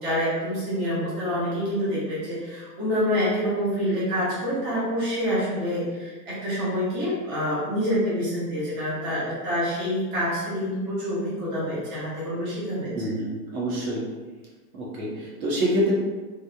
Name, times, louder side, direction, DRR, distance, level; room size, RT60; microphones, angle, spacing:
voice 1, 0.0-12.9, equal, 15° right, -9 dB, 0.3 m, -27 dB
voice 2, 12.9-14.0 14.7-15.9, equal, 60° right, -5 dB, 1.0 m, -26 dB
2.9 x 2.4 x 2.3 m, 1.3 s
supercardioid pair, 145°, 48 cm